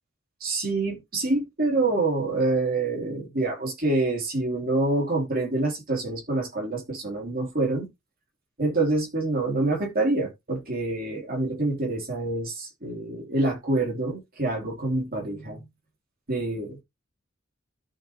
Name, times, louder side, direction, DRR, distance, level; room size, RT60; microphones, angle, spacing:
voice 1, 0.4-7.9 8.6-15.6 16.3-16.8, right 2 dB, 45° right, 3.0 m, -26 dB
13.5 x 5.1 x 2.9 m
head